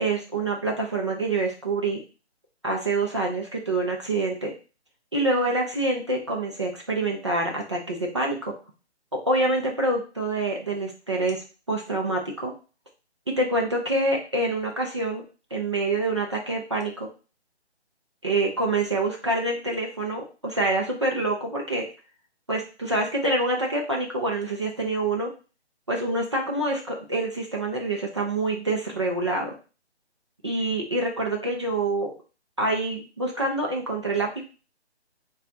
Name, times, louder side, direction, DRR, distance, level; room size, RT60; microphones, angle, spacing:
voice 1, 0.0-2.0 2.6-4.5 5.1-8.5 9.1-12.5 13.4-15.2 15.5-17.1 18.2-21.9 22.5-25.3 25.9-29.6 30.4-32.1 32.6-34.4, right 2 dB, 25° right, -1 dB, 0.5 m, -26 dB
3.6 x 2.4 x 3.9 m, 0.34 s
hypercardioid pair, 160°, 34 cm